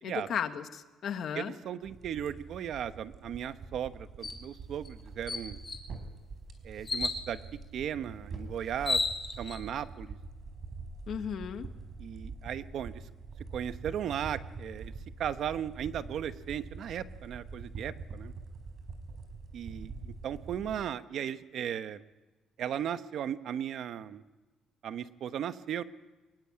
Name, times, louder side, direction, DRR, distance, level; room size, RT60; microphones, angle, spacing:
voice 1, 0.0-1.5 11.1-11.7, left 8 dB, 50° left, 8 dB, 1.5 m, -35 dB
voice 2, 1.3-5.6 6.6-7.4 7.7-9.0 9.4-10.2 12.0-13.0 13.5-14.9 15.2-18.3 19.5-22.0 22.6-24.2 24.8-25.8, right 9 dB, 55° right, 11 dB, 1.1 m, -36 dB
sound 1, 1.8-20.8, right 4 dB, 40° right, 4.3 m, -45 dB
sound 2, 4.2-4.4 4.8-4.9 5.3-5.9 6.9-7.2 8.3-8.4 8.7-9.6, left 3 dB, 20° left, 2.8 m, -32 dB
24.0 x 21.5 x 8.5 m, 1.2 s
cardioid pair, 160°, 0 cm